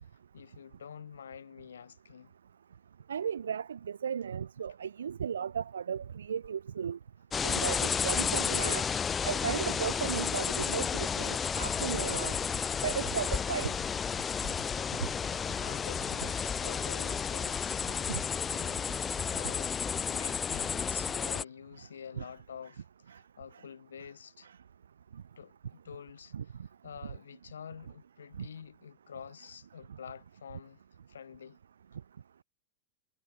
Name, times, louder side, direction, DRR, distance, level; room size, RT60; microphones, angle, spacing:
voice 1, 0.3-2.3 15.5-24.5 25.4-26.5 26.8-30.8 31.1-31.6, left 7 dB, 70° left, 2.1 m, -48 dB
voice 2, 3.1-7.0 7.4-8.9 9.2-12.4 12.8-13.7 18.1-18.2 22.2-22.3 26.3-26.4 28.4-28.5, right 7 dB, 70° right, 0.5 m, -35 dB
sound 1, 7.3-21.4, left 6 dB, 20° left, 1.0 m, -32 dB
figure-of-eight pair, 90°, 0 cm